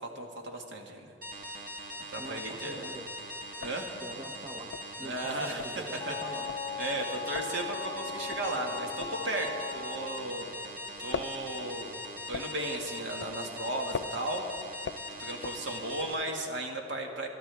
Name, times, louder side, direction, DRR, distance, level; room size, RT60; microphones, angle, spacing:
voice 1, 0.2-1.1 2.1-2.9 3.6-3.9 5.0-6.1 6.8-10.5 11.0-11.9 12.3-14.5 15.2-17.3, right 1 dB, 65° right, 1 dB, 1.9 m, -35 dB
sound 1, 1.2-16.1, left 1 dB, 45° right, 1.6 m, -41 dB
sound 2, 2.2-2.8 3.1-3.2 3.5-10.5 10.8-16.1, left 6 dB, 65° left, 0.4 m, -42 dB
voice 2, 2.2-3.1 4.0-6.5, right 1 dB, 25° right, 2 dB, 0.8 m, -44 dB
Wind instrument woodwind instrument, 6.0-10.3, left 5 dB, 30° left, 0.7 m, -39 dB
23.0 x 12.5 x 3.5 m, 2.4 s
head